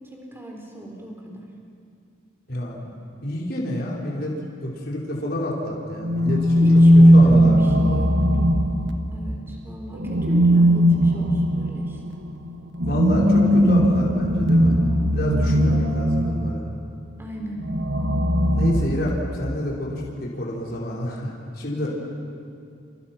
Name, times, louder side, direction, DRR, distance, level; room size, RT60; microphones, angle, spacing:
voice 1, 0.1-1.5 6.3-8.6 9.1-12.0 15.3-15.6 17.2-17.7 21.7-21.9, right 1 dB, 10° right, 0 dB, 4.2 m, -37 dB
voice 2, 2.5-2.9 3.2-4.3 4.6-6.7 6.9-8.0 12.8-14.8 15.1-16.6 18.5-21.9, left 1 dB, 55° left, -3 dB, 4.9 m, -29 dB
sound 1, 6.0-9.3 10.0-16.6 17.6-19.5, equal, 75° right, 1.8 m, -18 dB
29.0 x 29.0 x 6.0 m, 2.4 s
head